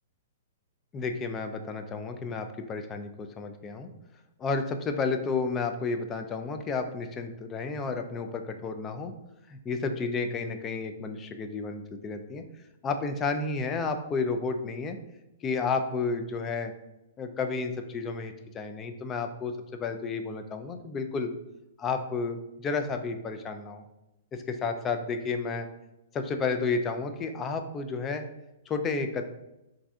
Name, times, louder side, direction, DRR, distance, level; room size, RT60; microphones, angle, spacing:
voice 1, 0.9-3.9 4.4-9.1 9.5-12.4 12.8-15.0 15.4-16.7 17.2-21.3 21.8-23.8 24.3-25.7 26.1-28.2 28.7-29.2, left 4 dB, 25° left, 6 dB, 0.3 m, -31 dB
4.0 x 2.5 x 2.4 m, 0.91 s
hypercardioid pair, 125°, 0 cm